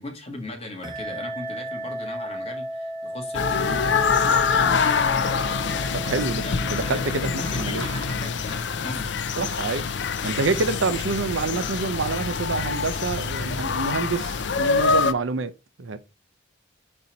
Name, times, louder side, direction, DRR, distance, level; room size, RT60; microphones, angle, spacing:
voice 1, 0.0-5.2 6.0-9.1 10.2-10.5, left 2 dB, 30° left, 1.6 m, -38 dB
sound 1, 0.8-9.0, right 1 dB, 20° right, 1.1 m, -36 dB
sound 2, 3.3-15.1, left 5 dB, 65° left, 0.5 m, -25 dB
voice 2, 5.9-7.9 9.4-9.9 10.2-16.0, right 4 dB, 80° right, 0.6 m, -27 dB
sound 3, 6.6-12.3, right 1 dB, 10° left, 2.8 m, -46 dB
4.3 x 4.2 x 5.1 m
head